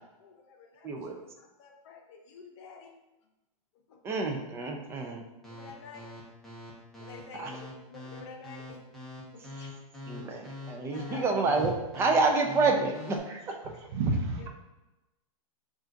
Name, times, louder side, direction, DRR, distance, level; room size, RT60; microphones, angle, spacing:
voice 1, 0.2-1.1 1.4-2.9 3.9-4.2 5.5-6.1 7.0-8.8 9.3-9.7 10.9-11.3 14.4-14.5, left 5 dB, 50° left, 2 dB, 0.7 m, -49 dB
voice 2, 0.8-1.2 4.0-5.2 7.4-7.5 10.1-13.4, right 3 dB, 15° right, 2 dB, 0.4 m, -28 dB
sound 1, 5.4-13.2, left 2 dB, ahead, 0.8 m, -43 dB
voice 3, 13.9-14.5, right 2 dB, 45° right, 2 dB, 0.7 m, -28 dB
5.5 x 2.4 x 2.6 m, 1.0 s
hypercardioid pair, 145°, 19 cm